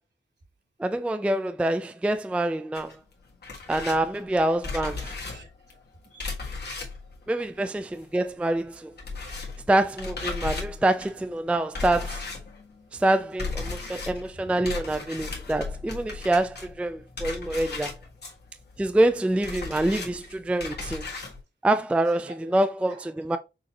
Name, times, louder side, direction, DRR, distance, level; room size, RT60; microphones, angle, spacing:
voice 1, 0.8-3.0 3.7-5.2 7.3-8.9 9.7-12.3 12.9-17.9 18.8-21.0 21.6-23.4, right 1 dB, 5° right, 0.3 m, -26 dB
Dog Jumps against Door, 2.7-8.3 8.5-21.4, left 4 dB, 60° left, 1.5 m, -36 dB
voice 2, 5.3-6.4 9.2-9.5 14.3-14.5 17.5-17.8 22.2-22.6 22.8-23.1, right 2 dB, 65° right, 2.2 m, -49 dB
6.2 x 2.8 x 2.8 m
wide cardioid pair, 125°, 19 cm